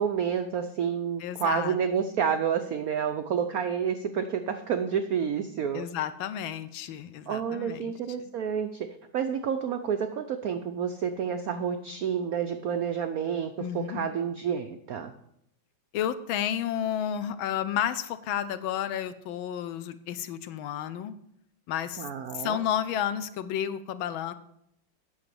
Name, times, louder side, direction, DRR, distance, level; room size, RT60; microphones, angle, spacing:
voice 1, 0.0-5.9 7.3-8.9 9.1-15.1 22.0-22.6, right 7 dB, 85° right, 7 dB, 0.7 m, -29 dB
voice 2, 1.2-2.1 5.7-7.9 13.6-14.1 15.9-21.1 21.7-22.1 22.3-24.3, left 10 dB, 75° left, 13 dB, 1.4 m, -31 dB
8.9 x 6.6 x 6.8 m, 0.76 s
omnidirectional pair, 2.3 m